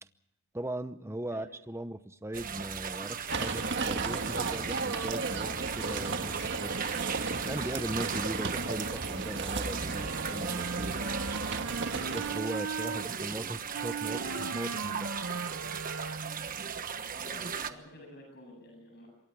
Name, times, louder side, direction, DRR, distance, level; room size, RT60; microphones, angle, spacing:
voice 1, 0.5-6.9 7.4-11.0 12.1-15.1, right 1 dB, 15° right, 12 dB, 0.8 m, -38 dB
sound 1, 2.3-17.7, right 7 dB, 45° right, 1.2 m, -37 dB
sound 2, 3.3-12.4, right 3 dB, 60° right, 1.6 m, -35 dB
Wind instrument woodwind instrument, 9.8-13.1 13.7-16.5, right 4 dB, 80° right, 1.0 m, -38 dB
voice 2, 12.9-13.5 16.9-19.1, left 1 dB, 50° left, 1 dB, 8.0 m, -50 dB
27.0 x 23.5 x 4.7 m, 0.90 s
head